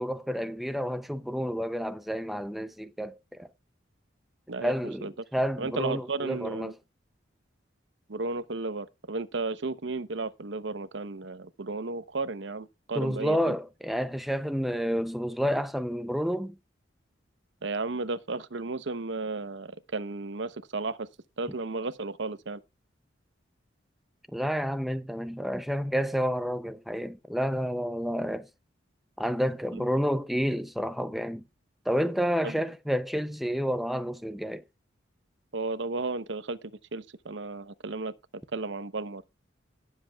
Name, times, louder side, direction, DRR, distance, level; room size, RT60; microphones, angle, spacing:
voice 1, 0.0-3.5 4.6-6.7 12.9-16.6 24.3-28.5 29.2-31.4 31.9-34.6, equal, ahead, 0.5 m, -30 dB
voice 2, 5.6-6.7 8.1-13.5 17.6-21.1 21.4-22.6 29.7-29.8 32.4-32.5 35.5-38.1 38.5-39.2, right 3 dB, 75° right, 0.8 m, -34 dB
18.0 x 7.5 x 2.3 m
head